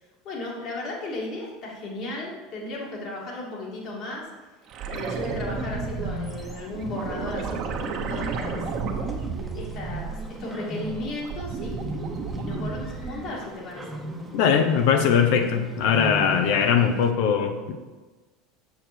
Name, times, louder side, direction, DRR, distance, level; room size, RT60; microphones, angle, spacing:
voice 1, 0.2-4.3 4.9-8.6 9.6-14.0, left 2 dB, 50° left, -3 dB, 2.7 m, -35 dB
sound 1, 4.7-10.5 10.9-13.4 15.8-15.9, right 5 dB, 50° right, 1.2 m, -32 dB
Bird, 5.0-17.1, right 1 dB, 5° right, 1.1 m, -38 dB
voice 2, 14.3-17.8, left 7 dB, 70° left, 6 dB, 1.0 m, -21 dB
7.4 x 6.4 x 4.5 m, 1.3 s
supercardioid pair, 105°, 0 cm